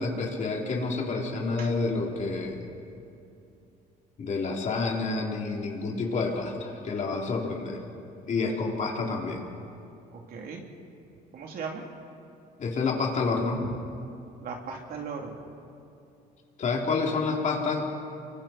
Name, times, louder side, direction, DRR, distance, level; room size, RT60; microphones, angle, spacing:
voice 1, 0.0-2.7 4.2-7.8 8.3-9.4 12.6-13.6 16.6-17.9, left 4 dB, 45° left, 0 dB, 3.6 m, -29 dB
voice 2, 10.1-10.6 11.3-11.8 13.6-13.7 14.4-15.5, right 5 dB, 60° right, 0 dB, 3.5 m, -37 dB
29.0 x 24.0 x 4.5 m, 2.6 s
cardioid pair, 110°, 17 cm